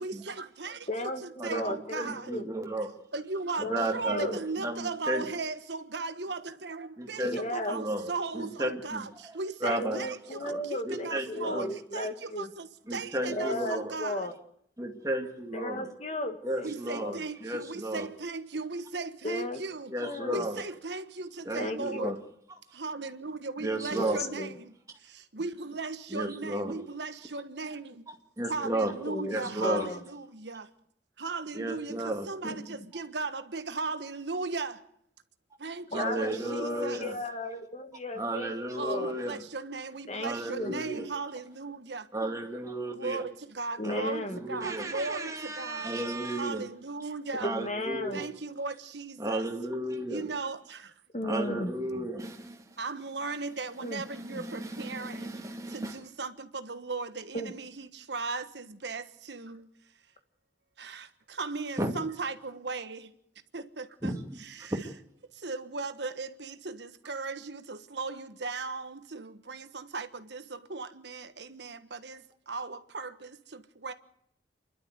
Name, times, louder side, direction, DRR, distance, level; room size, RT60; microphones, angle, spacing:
voice 1, 0.0-2.4 3.1-14.3 16.6-19.9 20.3-22.1 22.7-24.7 25.0-28.0 28.5-30.7 31.2-34.9 35.6-37.0 38.8-42.1 42.9-45.9 46.4-47.5 48.1-49.5 50.1-50.9 52.8-55.3 55.7-59.7 60.8-63.1 63.5-64.1 64.4-64.8 65.3-73.9, right 3 dB, 75° right, 1.4 m, -37 dB
voice 2, 0.9-2.4 3.6-4.3 7.2-7.8 9.6-12.5 13.2-14.3 15.5-17.2 19.2-19.6 20.0-20.5 21.6-22.1 23.9-24.5 29.1-29.3 29.6-30.0 32.4-32.7 35.9-39.1 40.1-40.7 43.8-44.4 47.4-48.2 51.1-51.7 53.8-54.0 54.3-54.4 57.3-57.5, left 1 dB, 35° left, 2.0 m, -35 dB
voice 3, 1.4-2.9 3.6-5.3 7.0-7.4 7.7-9.0 9.6-10.0 10.4-11.7 12.9-13.9 14.8-15.9 16.4-18.1 19.9-20.6 21.4-22.2 23.6-24.2 26.1-26.7 28.4-28.9 29.3-29.9 31.5-32.3 35.9-37.2 38.2-39.4 40.2-41.1 42.1-43.2 43.8-46.6 47.4-48.3 49.2-50.2 51.2-52.8 54.1-56.0 61.8-61.9 64.0-64.4 64.7-64.8, right 1 dB, 20° right, 2.3 m, -34 dB
28.0 x 12.0 x 8.2 m
head